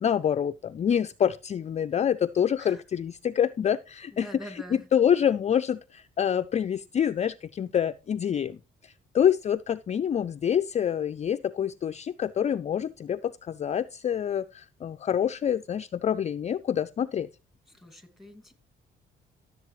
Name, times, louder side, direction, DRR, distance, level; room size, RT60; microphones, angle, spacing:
voice 1, 0.0-4.3 4.9-8.6 8.8-17.3, left 9 dB, 35° left, 0.4 m, -26 dB
voice 2, 4.1-4.9 17.7-18.5, equal, ahead, 2.4 m, -45 dB
14.0 x 7.4 x 3.1 m
cardioid pair, 90°, 20 cm